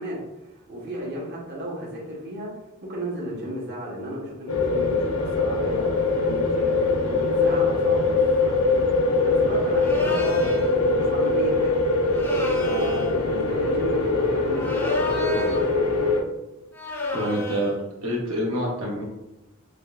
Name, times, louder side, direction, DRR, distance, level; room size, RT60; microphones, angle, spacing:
voice 1, 0.0-2.5 2.9-11.8 12.6-15.7, equal, 55° right, -4 dB, 1.0 m, -34 dB
sound 1, 4.5-16.2, left 3 dB, 80° left, 0.5 m, -22 dB
sound 2, 9.8-10.7 12.1-13.2 14.5-15.8 16.7-17.8, left 1 dB, 10° left, 0.5 m, -31 dB
voice 2, 17.1-17.7 18.0-19.0, equal, 90° right, -3 dB, 0.9 m, -27 dB
5.1 x 2.2 x 2.4 m, 0.92 s
head